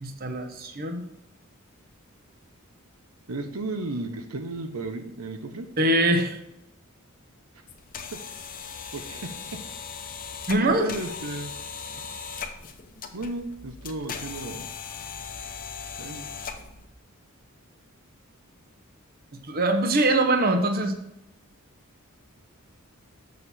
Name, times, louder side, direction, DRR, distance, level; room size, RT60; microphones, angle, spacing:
voice 1, 0.0-1.0 5.8-6.4 10.5-10.9 19.4-21.0, right 1 dB, 45° right, 6 dB, 0.9 m, -23 dB
voice 2, 3.3-5.7 8.1-8.2 8.9-9.3 10.6-11.5 13.1-14.7 16.0-16.3, right 2 dB, 85° right, 7 dB, 0.9 m, -34 dB
sound 1, 7.7-16.9, left 6 dB, 40° left, 0.8 m, -38 dB
7.1 x 6.7 x 4.2 m, 0.82 s
head